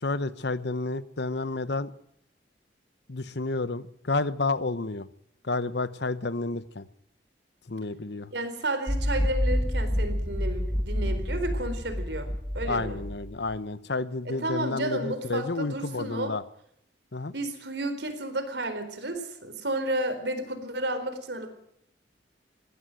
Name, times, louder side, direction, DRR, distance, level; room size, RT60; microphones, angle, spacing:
voice 1, 0.0-1.9 3.1-5.1 5.4-6.9 7.7-8.3 12.7-16.4 17.1-17.3, left 3 dB, 70° left, 15 dB, 1.1 m, -30 dB
voice 2, 8.3-12.3 12.5-13.0 14.2-16.3 17.3-21.5, right 1 dB, 70° right, 9 dB, 4.2 m, -32 dB
sound 1, 8.9-13.5, equal, 20° left, 1.6 m, -28 dB
20.5 x 17.0 x 7.8 m, 0.71 s
head